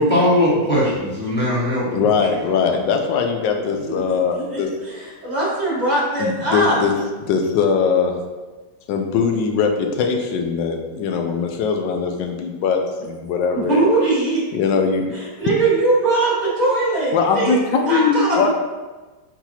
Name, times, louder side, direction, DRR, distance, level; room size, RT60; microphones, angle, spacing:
voice 1, 0.0-2.1 2.3-2.6, equal, 5° left, -8 dB, 1.0 m, -19 dB
voice 2, 1.9-4.7 6.2-6.9 7.3-8.2 8.9-13.8 14.5-15.1 17.1-18.5, left 5 dB, 75° left, 4 dB, 1.2 m, -21 dB
voice 3, 4.1-6.8 13.5-14.4 15.1-17.6 17.8-18.5, right 2 dB, 25° right, -8 dB, 1.2 m, -21 dB
4.5 x 4.0 x 2.8 m, 1.2 s
omnidirectional pair, 2.1 m